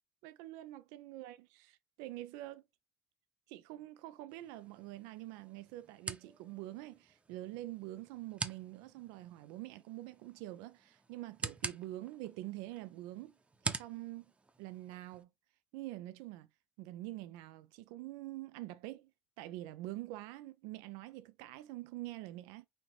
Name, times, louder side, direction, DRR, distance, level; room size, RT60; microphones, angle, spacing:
voice 1, 0.2-2.6 3.5-13.3 13.6-14.3 14.6-15.3 15.7-16.5 16.8-19.1 19.4-22.7, right 16 dB, 85° right, 0.4 m, -46 dB
sound 1, 4.3-15.2, right 3 dB, 20° right, 0.7 m, -46 dB
4.3 x 2.7 x 3.1 m
supercardioid pair, 75°, 6 cm